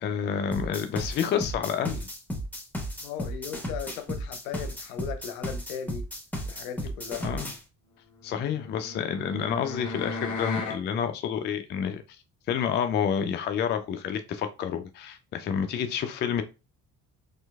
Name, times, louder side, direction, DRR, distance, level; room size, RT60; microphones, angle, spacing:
voice 1, 0.0-2.1 7.2-7.5 8.2-12.0 12.5-16.4, left 8 dB, 25° left, 0.4 m, -29 dB
sound 1, 0.5-7.6, equal, 5° left, 1.2 m, -34 dB
voice 2, 3.0-6.0 6.5-7.2, left 8 dB, 65° left, 0.6 m, -37 dB
sound 2, 8.2-10.8, left 3 dB, 40° left, 0.8 m, -35 dB
4.3 x 2.6 x 2.3 m
figure-of-eight pair, 45°, 46 cm